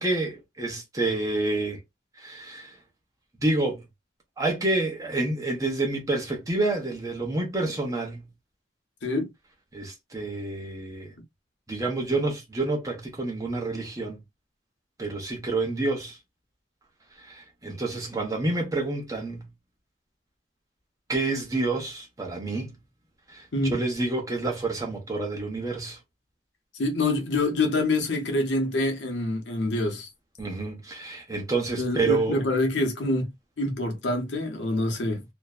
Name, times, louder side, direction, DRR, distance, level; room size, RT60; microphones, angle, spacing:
voice 1, 0.0-1.8 2.2-2.7 3.4-3.8 4.4-8.3 9.7-11.1 11.7-14.2 15.0-16.2 17.3-19.5 21.1-22.7 23.3-26.0 30.4-32.4, right 2 dB, 20° right, 0.8 m, -28 dB
voice 2, 9.0-9.3 23.5-23.8 26.7-30.1 31.8-33.3 33.6-35.2, left 2 dB, 85° left, 0.8 m, -26 dB
2.6 x 2.1 x 2.2 m
head